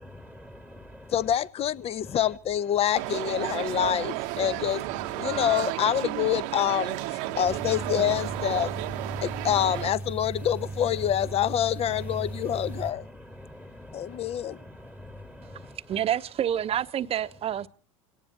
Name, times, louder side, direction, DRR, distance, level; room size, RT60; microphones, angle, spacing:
voice 1, 0.2-1.1 5.2-5.4 9.1-9.3 13.3-15.7, left 1 dB, 5° left, 1.6 m, -46 dB
voice 2, 1.1-4.8 5.2-7.0 7.4-8.7 9.2-13.0 13.9-14.6, left 10 dB, 35° left, 1.0 m, -26 dB
sound 1, 2.9-9.9, right 17 dB, 60° right, 1.0 m, -33 dB
sound 2, 7.4-12.9, right 2 dB, 10° right, 1.3 m, -37 dB
voice 3, 15.9-17.7, right 10 dB, 35° right, 1.0 m, -28 dB
27.5 x 18.0 x 2.9 m
hypercardioid pair, 85°, 17 cm